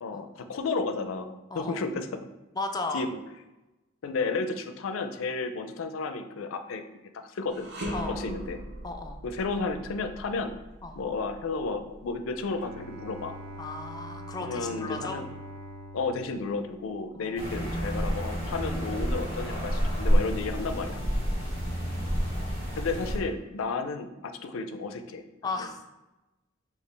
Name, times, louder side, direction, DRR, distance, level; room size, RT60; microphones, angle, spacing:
voice 1, 0.0-2.3 2.9-3.2 4.0-6.8 7.1-7.7 8.1-8.6 9.2-10.5 11.0-13.4 14.4-15.3 15.9-21.0 22.8-25.2, left 4 dB, 85° left, 8 dB, 0.4 m, -32 dB
voice 2, 1.5-1.8 2.5-3.0 7.9-8.2 8.8-9.2 10.8-11.0 13.6-15.2 17.1-17.4 21.1-21.8 22.8-22.9 25.4-25.8, left 3 dB, 20° left, 5 dB, 0.4 m, -36 dB
sound 1, 7.5-16.7 17.1-17.3 18.2-19.1, equal, 60° right, 0.7 m, -42 dB
Bowed string instrument, 12.4-17.3, equal, 85° right, 0.4 m, -44 dB
sound 2, 17.4-23.2, equal, 30° right, 1.5 m, -29 dB
5.1 x 2.4 x 3.2 m, 1.0 s
head